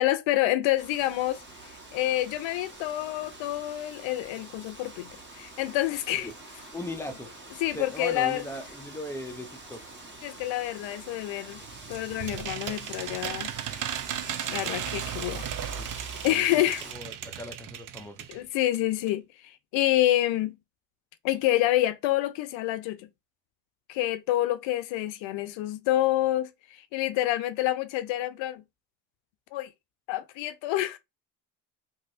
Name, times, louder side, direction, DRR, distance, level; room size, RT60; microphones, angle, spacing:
voice 1, 0.0-6.3 7.6-8.4 10.2-11.6 11.9-13.5 14.5-15.5 16.2-16.9 18.3-20.6 21.2-23.1 23.9-28.6 29.5-29.7 30.1-31.0, left 15 dB, 75° left, 0.5 m, -28 dB
Wind, 0.8-16.9, right 2 dB, 25° right, 1.5 m, -45 dB
voice 2, 6.7-7.3 7.7-9.8 15.8-15.9 16.3-18.2, left 1 dB, 5° left, 0.7 m, -38 dB
sound 1, 11.5-18.4 18.7-18.8 19.1-19.2, right 10 dB, 45° right, 0.5 m, -36 dB
2.9 x 2.7 x 2.6 m
supercardioid pair, 70°, 46 cm